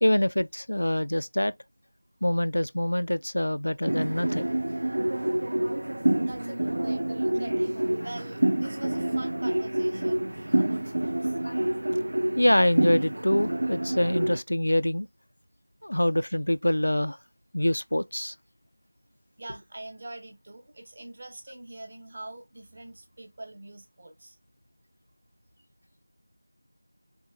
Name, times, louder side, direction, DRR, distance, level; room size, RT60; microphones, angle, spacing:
voice 1, 0.0-1.5 2.2-4.5 11.4-11.7 12.4-15.1 15.8-17.2 17.5-18.3, left 1 dB, 65° left, 0.3 m, -25 dB
sound 1, 3.9-14.4, right 1 dB, 55° right, 0.6 m, -27 dB
voice 2, 6.2-7.7 8.0-11.4 19.4-24.4, right 2 dB, 30° right, 1.0 m, -44 dB
4.5 x 4.0 x 2.6 m
figure-of-eight pair, 170°, 0 cm